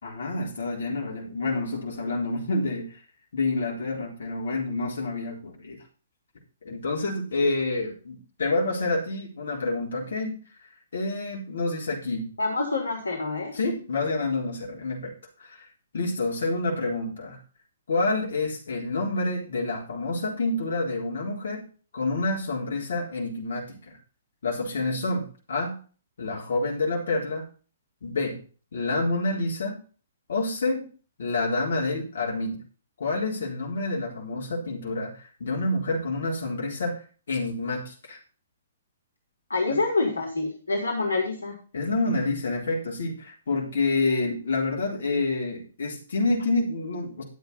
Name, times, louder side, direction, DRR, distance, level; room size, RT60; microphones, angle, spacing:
voice 1, 0.0-2.9 3.3-5.8 6.6-10.4 10.9-12.3 13.5-15.1 15.4-15.7 15.9-17.4 17.9-21.7 21.9-24.0 24.4-25.8 26.2-27.5 28.0-28.4 28.7-29.8 30.3-30.9 31.2-32.6 33.0-38.2 39.7-39.8 41.7-47.2, left 2 dB, 60° left, -1 dB, 4.0 m, -28 dB
voice 2, 12.4-13.6 39.5-41.5, left 3 dB, 75° left, 1 dB, 3.7 m, -26 dB
11.5 x 8.1 x 4.1 m, 0.37 s
figure-of-eight pair, 120°, 0 cm